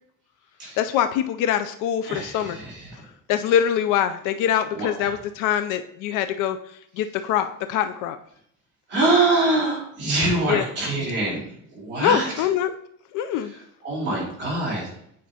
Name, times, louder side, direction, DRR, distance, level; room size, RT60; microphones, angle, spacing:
voice 1, 0.8-2.6 3.3-6.6 7.0-8.2 10.5-10.7 12.0-12.7 13.1-13.5, left 9 dB, 80° left, 9 dB, 0.5 m, -23 dB
voice 2, 2.1-3.0 4.7-5.1 8.9-11.4 11.7-12.4 13.8-14.8, right 2 dB, 35° right, -6 dB, 3.0 m, -24 dB
9.3 x 5.1 x 2.8 m, 0.71 s
cardioid pair, 175°, 31 cm